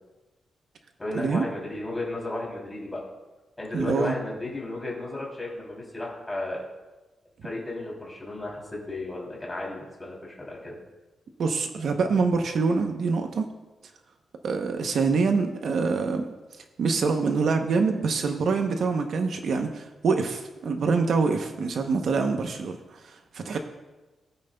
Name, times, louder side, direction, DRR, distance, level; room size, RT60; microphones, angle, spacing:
voice 1, 1.0-3.0 3.6-6.7 7.4-10.7, left 2 dB, 15° left, -3 dB, 3.0 m, -34 dB
voice 2, 3.7-4.2 11.4-13.5 14.4-16.2 16.8-23.6, right 4 dB, 55° right, 5 dB, 0.8 m, -25 dB
20.0 x 8.8 x 2.3 m, 1.1 s
wide cardioid pair, 165°, 0 cm